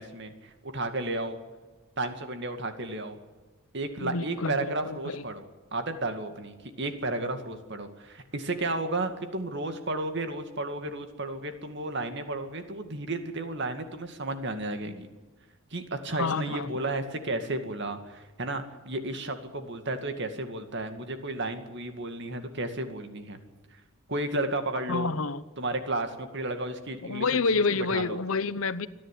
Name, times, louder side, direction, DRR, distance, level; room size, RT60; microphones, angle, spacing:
voice 1, 0.0-1.4 2.0-3.2 3.7-15.1 15.7-23.4 24.1-25.1 25.6-27.3 27.5-28.2, right 2 dB, 55° right, 7 dB, 2.3 m, -33 dB
voice 2, 4.0-5.2 16.1-16.7 24.9-25.4 27.0-28.9, left 4 dB, 70° left, 16 dB, 0.8 m, -28 dB
28.0 x 11.0 x 9.4 m, 1.2 s
head